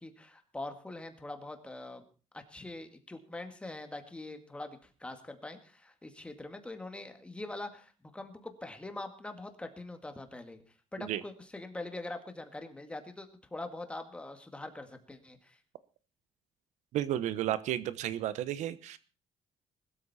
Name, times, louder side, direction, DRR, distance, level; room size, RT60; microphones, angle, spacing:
voice 1, 0.0-2.0 2.3-10.6 10.9-15.6, left 2 dB, 10° left, 6 dB, 2.1 m, -43 dB
voice 2, 16.9-19.0, right 12 dB, 80° right, 15 dB, 1.1 m, -32 dB
20.0 x 13.0 x 4.3 m, 0.36 s
cardioid pair, 160°, 12 cm